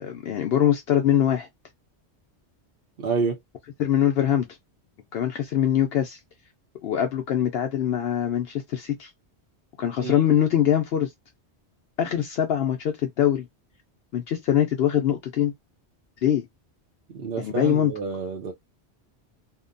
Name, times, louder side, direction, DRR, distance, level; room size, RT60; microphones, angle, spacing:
voice 1, 0.0-1.5 3.8-4.5 5.1-6.2 6.8-9.1 9.8-11.1 12.0-13.5 14.1-15.5 16.2-16.5 17.4-17.9, left 10 dB, 65° left, 0.7 m, -23 dB
voice 2, 3.0-3.4 10.0-10.1 17.1-18.5, right 4 dB, 60° right, 0.8 m, -28 dB
2.8 x 2.2 x 2.5 m
omnidirectional pair, 1.2 m